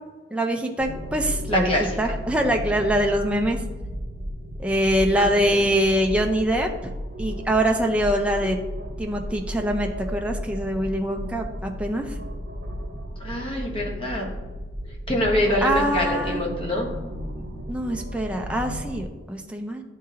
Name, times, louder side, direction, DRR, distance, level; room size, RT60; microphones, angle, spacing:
voice 1, 0.3-1.7 2.0-3.6 4.6-6.7 7.2-8.6 9.0-12.1 15.6-16.5 17.7-19.8, right 1 dB, 5° right, 2 dB, 0.4 m, -24 dB
sound 1, 0.8-19.1, equal, 65° right, 0.8 m, -34 dB
voice 2, 1.5-1.9 5.2-5.6 13.2-14.3 15.1-16.9, left 1 dB, 30° left, -1 dB, 1.1 m, -25 dB
10.0 x 3.7 x 2.8 m, 1.2 s
head